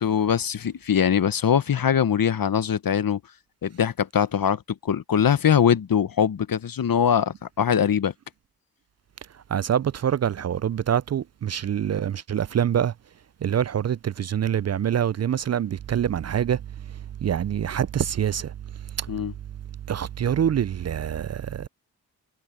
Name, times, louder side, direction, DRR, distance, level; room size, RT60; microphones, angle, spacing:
voice 1, 0.0-3.2 3.6-8.1 19.1-19.3, left 8 dB, 60° left, 1.2 m, -22 dB
voice 2, 9.3-12.9 13.4-19.1 19.9-21.7, right 9 dB, 40° right, 0.5 m, -26 dB
supercardioid pair, 40°, 39 cm